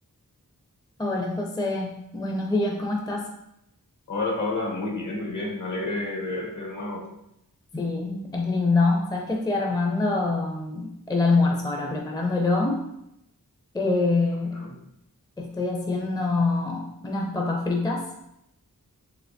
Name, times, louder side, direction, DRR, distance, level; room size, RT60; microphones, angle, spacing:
voice 1, 1.0-3.2 7.7-12.8 13.7-14.6 15.4-18.0, left 3 dB, 10° left, 0 dB, 0.5 m, -25 dB
voice 2, 4.1-7.1 14.5-14.8, left 2 dB, 55° left, -1 dB, 0.9 m, -30 dB
3.3 x 3.0 x 2.6 m, 0.81 s
wide cardioid pair, 45°, 36 cm